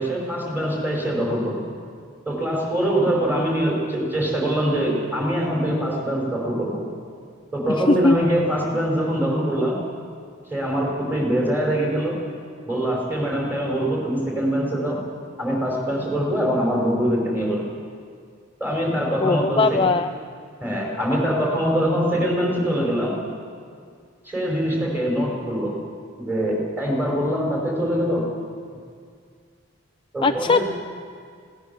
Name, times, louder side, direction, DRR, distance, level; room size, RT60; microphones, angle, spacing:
voice 1, 0.0-1.7 2.3-6.9 7.5-9.8 10.5-12.2 12.7-15.0 15.4-17.7 18.6-19.9 20.6-23.2 24.3-25.8 26.2-28.3 30.1-30.7, equal, 10° right, -2 dB, 5.2 m, -23 dB
voice 2, 19.2-20.1 30.2-30.7, left 3 dB, 25° left, 7 dB, 0.4 m, -19 dB
20.5 x 18.0 x 7.2 m, 2.2 s
head